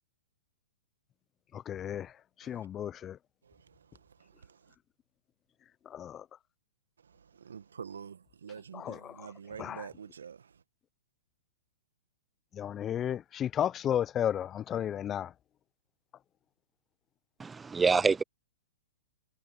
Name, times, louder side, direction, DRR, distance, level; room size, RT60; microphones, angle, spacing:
voice 1, 1.5-2.1 2.5-3.2 5.9-6.2 8.7-9.3 9.6-9.9 12.6-15.3, left 10 dB, 25° left, 0.7 m, -33 dB
voice 2, 7.4-10.5, right 7 dB, 80° right, 1.7 m, -45 dB
voice 3, 17.4-18.2, right 4 dB, 10° right, 0.5 m, -26 dB
hypercardioid pair, 120°, 0 cm